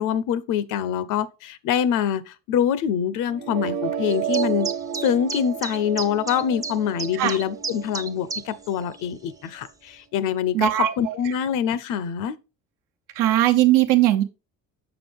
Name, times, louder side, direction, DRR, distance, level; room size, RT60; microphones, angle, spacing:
voice 1, 0.0-4.7 5.0-12.4, left 9 dB, 75° left, 0.7 m, -25 dB
sound 1, 3.3-9.3, right 10 dB, 55° right, 1.2 m, -32 dB
sound 2, 4.1-8.7 9.0-9.1 9.7-9.8, right 4 dB, 10° right, 0.5 m, -32 dB
voice 2, 10.5-11.1 13.2-14.2, right 14 dB, 85° right, 1.0 m, -19 dB
7.1 x 6.0 x 3.4 m
cardioid pair, 140°, 32 cm